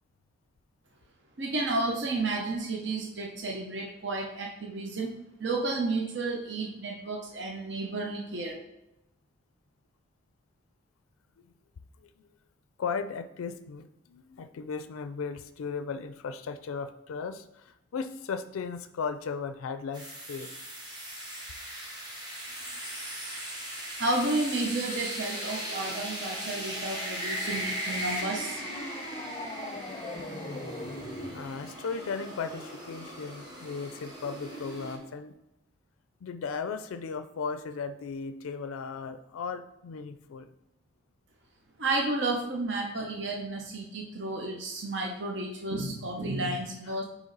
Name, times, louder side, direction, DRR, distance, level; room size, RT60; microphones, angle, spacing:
voice 1, 1.4-8.6 24.0-28.6 41.8-47.0, right 2 dB, 55° right, 0 dB, 0.7 m, -32 dB
voice 2, 12.8-20.5 22.7-22.8 31.3-35.3 36.2-40.5 46.9-47.0, left 5 dB, 80° left, 10 dB, 0.4 m, -36 dB
sound 1, 19.9-35.0, right 1 dB, 20° right, 1.2 m, -38 dB
sound 2, 24.9-31.4, left 1 dB, 20° left, 0.5 m, -42 dB
9.2 x 3.1 x 3.9 m, 0.90 s
head